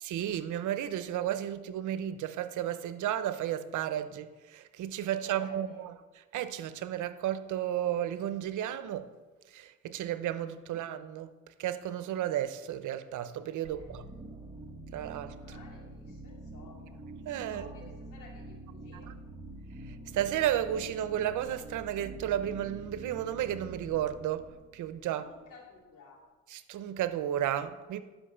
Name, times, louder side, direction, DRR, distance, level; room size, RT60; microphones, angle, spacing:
voice 1, 0.0-9.1 9.5-11.3 11.6-14.0 14.9-15.4 17.3-17.7 19.1-19.2 20.1-25.3 26.5-28.0, right 11 dB, 75° right, 0.7 m, -33 dB
voice 2, 5.1-5.9 10.6-10.8 13.7-14.2 15.4-17.0 17.4-19.1 25.1-26.3, left 3 dB, 90° left, 2.7 m, -54 dB
sound 1, 13.6-25.4, right 2 dB, 10° right, 1.3 m, -46 dB
11.0 x 5.8 x 6.8 m
cardioid pair, 90°, 30 cm